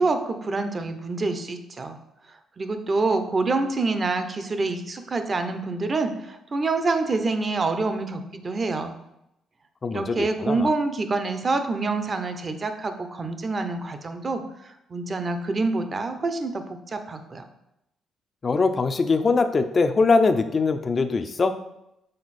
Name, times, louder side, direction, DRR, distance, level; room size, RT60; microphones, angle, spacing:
voice 1, 0.0-2.0 2.6-8.9 9.9-14.4 14.9-17.4, right 3 dB, 35° right, 8 dB, 0.7 m, -26 dB
voice 2, 9.8-10.7 18.4-21.6, left 4 dB, 35° left, 8 dB, 0.5 m, -22 dB
6.6 x 4.1 x 4.2 m, 0.85 s
cardioid pair, 90°, 0 cm